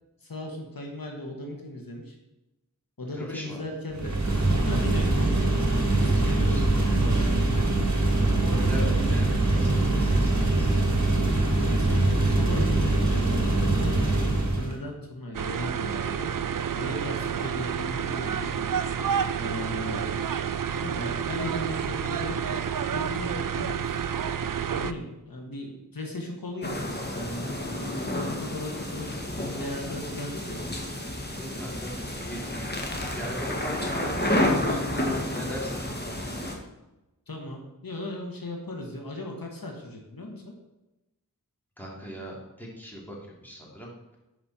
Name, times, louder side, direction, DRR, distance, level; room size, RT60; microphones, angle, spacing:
voice 1, 0.2-2.2 3.0-5.5 5.9-7.7 8.7-9.2 11.1-14.1 14.5-16.3 16.7-18.5 19.4-20.1 20.8-22.6 22.9-24.0 24.7-30.6 33.9-34.0 37.3-40.5, left 2 dB, 90° left, 1 dB, 1.5 m, -37 dB
voice 2, 3.1-3.6 6.0-6.6 8.2-10.7 29.4-29.7 31.3-32.0 32.2-32.7 33.1-35.8 41.8-43.9, equal, 5° left, -4 dB, 3.0 m, -39 dB
sound 1, 3.9-14.8, right 2 dB, 55° right, 1.7 m, -23 dB
sound 2, 15.3-24.9, right 8 dB, 70° right, 0.5 m, -29 dB
sound 3, 26.6-36.5, left 1 dB, 30° left, 1.8 m, -30 dB
11.0 x 5.2 x 4.4 m, 0.99 s
wide cardioid pair, 45°, 34 cm